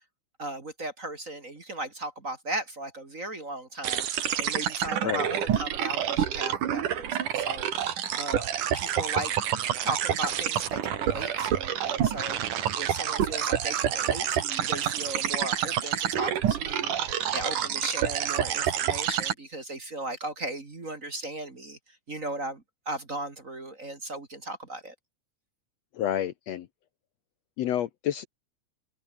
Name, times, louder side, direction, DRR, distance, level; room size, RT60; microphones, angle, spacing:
voice 1, 0.4-8.5 8.7-9.3 9.8-21.8 22.1-24.9, right 2 dB, 25° right, 2.5 m, -37 dB
sound 1, 3.8-19.3, right 10 dB, 90° right, 3.4 m, -28 dB
voice 2, 25.9-26.7 27.6-28.3, left 11 dB, 65° left, 1.9 m, -29 dB
open air
omnidirectional pair, 3.6 m